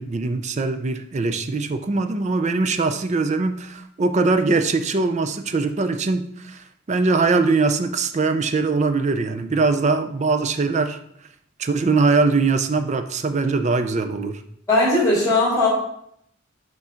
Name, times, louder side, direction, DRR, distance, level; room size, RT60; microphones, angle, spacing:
voice 1, 0.0-11.0 11.6-14.4, right 3 dB, 35° right, 9 dB, 0.4 m, -22 dB
voice 2, 14.7-15.7, left 2 dB, 15° left, -5 dB, 2.3 m, -18 dB
6.1 x 3.8 x 4.4 m, 0.70 s
head